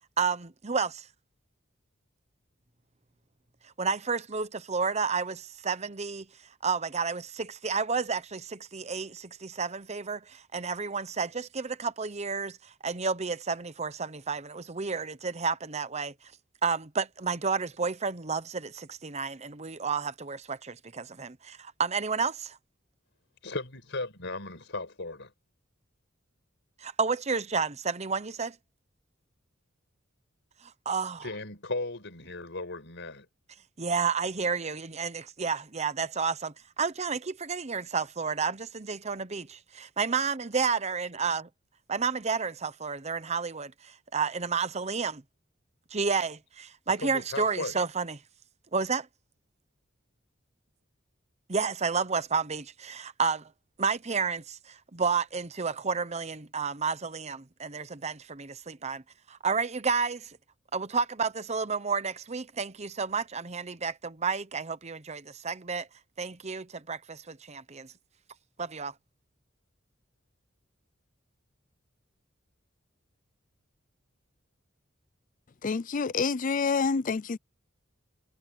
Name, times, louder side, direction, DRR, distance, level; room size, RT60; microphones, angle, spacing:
voice 1, 0.2-1.1 3.8-5.3 5.6-6.3 6.6-16.1 16.6-22.6 26.8-28.6 30.6-31.3 33.8-41.4 41.9-45.2 45.9-48.2 48.7-49.1 51.5-53.5 53.8-59.0 59.3-60.4 60.7-65.9 66.2-67.9 68.6-68.9, right 5 dB, 35° right, 0.9 m, -31 dB
voice 2, 23.4-25.3 31.2-33.3 47.0-47.8, left 2 dB, 65° left, 5.7 m, -36 dB
voice 3, 75.6-77.4, left 5 dB, 40° left, 0.5 m, -27 dB
head